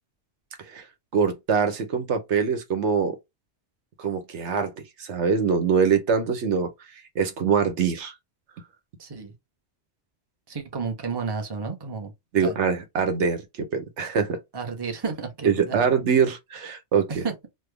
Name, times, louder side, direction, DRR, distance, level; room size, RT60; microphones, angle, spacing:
voice 1, 1.1-3.2 4.0-4.7 5.0-6.7 7.1-8.1 12.3-14.4 15.4-17.2, right 6 dB, 80° right, 1.1 m, -23 dB
voice 2, 9.0-9.3 10.5-12.1 12.4-12.6 14.5-15.8 17.1-17.3, right 5 dB, 25° right, 0.8 m, -31 dB
3.4 x 2.2 x 3.3 m
omnidirectional pair, 1.2 m